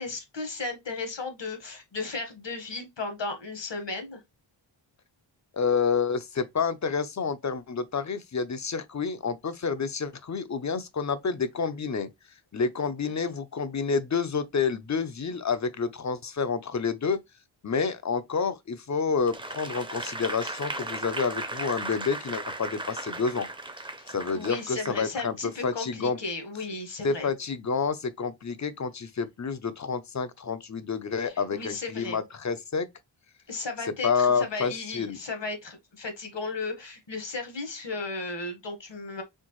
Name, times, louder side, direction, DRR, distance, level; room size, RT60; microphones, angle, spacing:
voice 1, 0.0-4.2 24.0-27.3 31.2-32.2 33.5-39.2, left 3 dB, 65° left, 1.5 m, -35 dB
voice 2, 5.5-12.1 12.5-17.2 17.6-23.5 24.1-26.2 27.0-32.9 34.0-35.2, left 5 dB, 40° left, 0.6 m, -29 dB
Applause / Crowd, 19.3-25.0 25.5-25.7, right 2 dB, 10° right, 0.7 m, -36 dB
4.4 x 3.5 x 3.0 m
wide cardioid pair, 100°, 47 cm